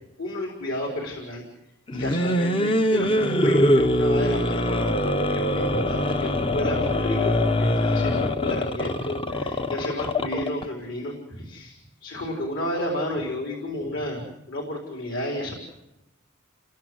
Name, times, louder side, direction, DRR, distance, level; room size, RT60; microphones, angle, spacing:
voice 1, 0.2-1.4 1.9-15.5, left 1 dB, 65° left, 1 dB, 4.4 m, -31 dB
sound 1, 1.9-10.6, left 1 dB, 25° left, 0.9 m, -23 dB
29.5 x 22.0 x 7.9 m, 0.95 s
head